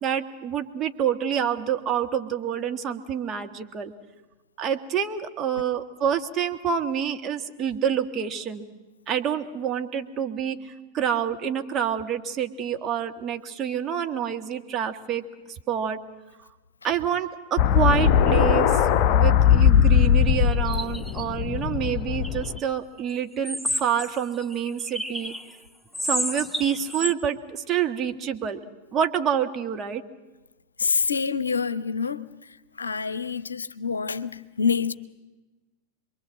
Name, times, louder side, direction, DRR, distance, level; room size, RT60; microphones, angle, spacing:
voice 1, 0.0-3.9 4.6-8.7 9.1-10.6 10.9-15.2 15.7-16.0 16.8-18.7 19.1-25.3 26.0-28.6 28.9-30.0, right 8 dB, 30° right, 1.9 m, -27 dB
sound 1, 17.6-22.6, left 9 dB, 40° left, 0.9 m, -20 dB
sound 2, 20.5-21.2 22.2-22.6 23.4-25.5 25.9-27.1, left 1 dB, 5° left, 1.0 m, -31 dB
voice 2, 30.8-32.3 32.8-34.9, left 5 dB, 75° left, 0.8 m, -26 dB
27.5 x 22.5 x 7.7 m
figure-of-eight pair, 90°, 0 cm